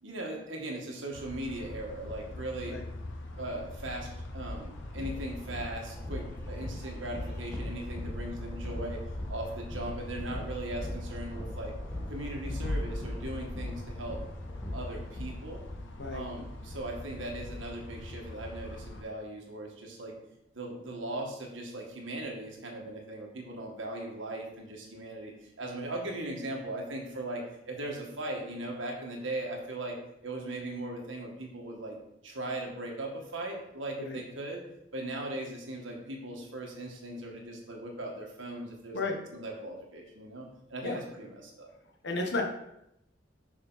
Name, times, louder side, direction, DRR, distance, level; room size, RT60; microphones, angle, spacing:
voice 1, 0.0-2.8 3.4-11.7 12.1-14.2 14.7-15.6 16.1-20.1 20.5-25.3 25.6-30.0 30.2-34.6 34.9-41.7, right 1 dB, 90° right, 0 dB, 1.7 m, -39 dB
sound 1, 1.1-19.0, left 1 dB, 80° left, 0.9 m, -41 dB
sound 2, 3.9-4.0 4.4-15.8, left 1 dB, 15° left, 1.4 m, -40 dB
voice 2, 42.0-42.4, left 3 dB, 65° left, 2 dB, 1.2 m, -32 dB
6.5 x 5.4 x 4.0 m, 0.83 s
head